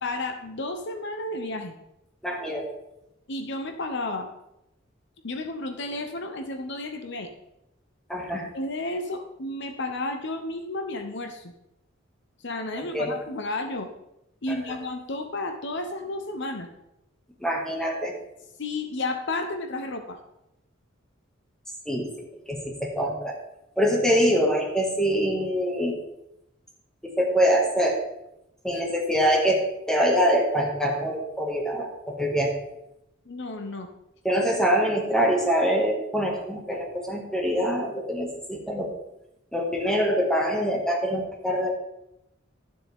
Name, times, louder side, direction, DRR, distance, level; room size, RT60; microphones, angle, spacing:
voice 1, 0.0-1.7 3.3-4.3 5.2-7.3 8.5-11.5 12.4-13.9 14.4-16.7 18.6-20.2 28.7-28.8 33.3-33.9, left 2 dB, 60° left, 6 dB, 0.9 m, -32 dB
voice 2, 2.2-2.6 8.1-8.5 12.8-13.1 14.5-14.6 17.4-18.1 21.9-22.1 22.5-23.4 23.8-26.0 27.0-28.0 28.6-32.5 34.2-38.9 39.5-41.7, equal, 5° left, -1 dB, 1.9 m, -24 dB
12.5 x 7.2 x 3.6 m, 0.85 s
head